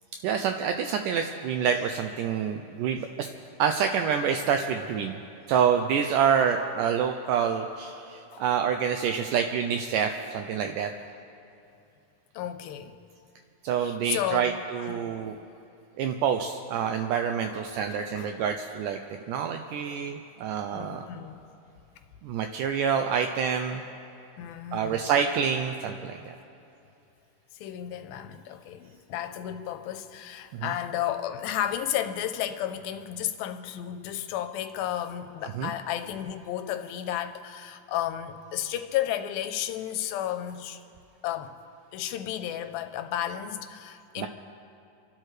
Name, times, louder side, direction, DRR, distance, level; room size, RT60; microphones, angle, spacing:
voice 1, 0.2-3.3 3.6-5.2 5.5-10.9 13.6-15.4 16.0-19.0 19.3-21.1 22.2-23.8 24.7-26.4 30.5-30.7 35.6-35.7 44.2-44.3, right 7 dB, 80° right, 6 dB, 1.9 m, -27 dB
voice 2, 12.3-12.9 13.8-15.0 17.5-18.5 20.7-21.4 24.4-25.1 27.5-40.8 41.2-41.6 41.9-44.3, left 11 dB, 90° left, 8 dB, 2.5 m, -33 dB
30.0 x 12.0 x 3.2 m, 2.7 s
omnidirectional pair, 4.1 m